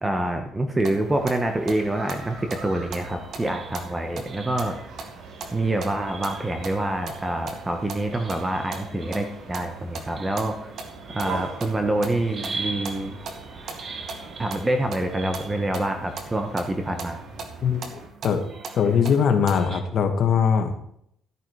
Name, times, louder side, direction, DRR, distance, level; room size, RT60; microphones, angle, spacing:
voice 1, 0.0-4.8 5.5-10.7 11.1-13.2 14.4-17.2, right 1 dB, 15° right, 5 dB, 1.3 m, -26 dB
sound 1, 0.8-19.6, right 4 dB, 55° right, 2.1 m, -41 dB
sound 2, 1.0-18.1, right 4 dB, 70° right, 3.3 m, -42 dB
sound 3, 2.5-17.4 18.4-19.8, right 3 dB, 40° right, 1.5 m, -42 dB
voice 2, 18.7-20.8, left 7 dB, 55° left, 5 dB, 2.1 m, -21 dB
14.0 x 9.2 x 4.9 m, 0.71 s
cardioid pair, 115°, 0 cm